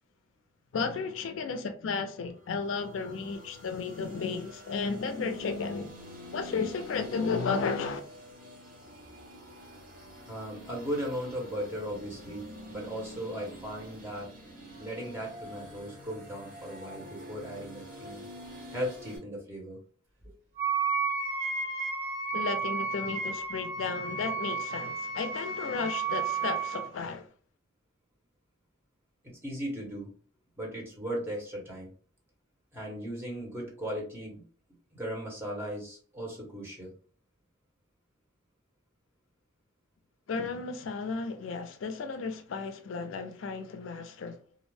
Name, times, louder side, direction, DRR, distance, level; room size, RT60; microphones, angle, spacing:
voice 1, 0.7-6.0 6.3-8.0 22.3-27.3 40.3-44.4, left 4 dB, 75° left, 0.4 m, -33 dB
sound 1, 2.3-19.2, equal, 45° right, 0.9 m, -47 dB
voice 2, 10.3-14.3 14.8-18.2 18.7-19.8 20.2-20.3 29.2-30.1 30.6-31.9 32.7-34.4 34.9-36.9, equal, 10° right, 1.0 m, -37 dB
Wind instrument woodwind instrument, 20.6-26.9, right 5 dB, 90° right, 1.4 m, -32 dB
2.5 x 2.0 x 3.1 m
head